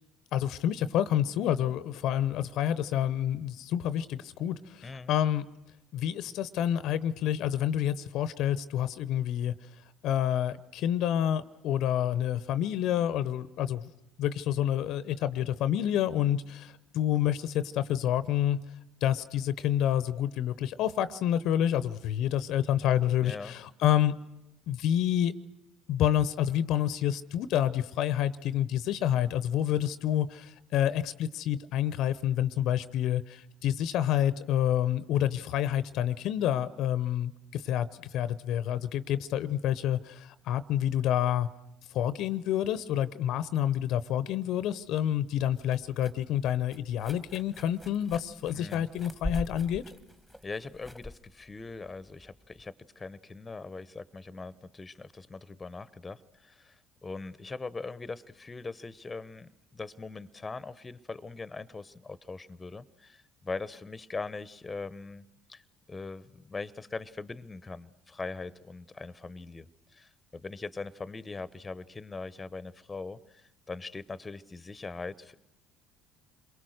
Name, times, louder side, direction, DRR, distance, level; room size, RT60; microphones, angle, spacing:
voice 1, 0.3-5.5 5.9-9.5 10.0-13.9 14.2-18.6 19.0-24.1 24.7-25.3 25.9-41.5 41.9-49.8, left 11 dB, 65° left, 15 dB, 0.8 m, -28 dB
voice 2, 4.8-5.2 23.2-23.5 48.5-48.9 50.4-65.6 65.9-75.3, left 3 dB, 20° left, 17 dB, 0.9 m, -41 dB
sound 1, 45.6-52.7, left 1 dB, ahead, 1.4 m, -43 dB
29.5 x 23.0 x 6.5 m, 0.91 s
hypercardioid pair, 65°, 0 cm